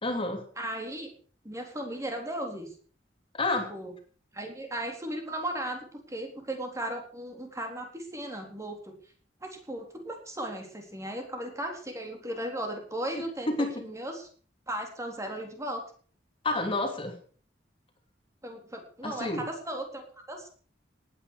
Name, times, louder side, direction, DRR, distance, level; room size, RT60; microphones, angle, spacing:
voice 1, 0.0-0.4 3.3-3.7 13.5-13.8 16.4-17.1 19.0-19.4, left 2 dB, 30° left, 5 dB, 2.9 m, -29 dB
voice 2, 0.6-1.1 1.4-2.7 3.7-3.9 4.3-8.9 9.4-14.3 14.7-15.8 18.4-20.5, right 1 dB, 15° right, 3 dB, 3.8 m, -36 dB
18.5 x 9.9 x 6.4 m, 0.44 s
head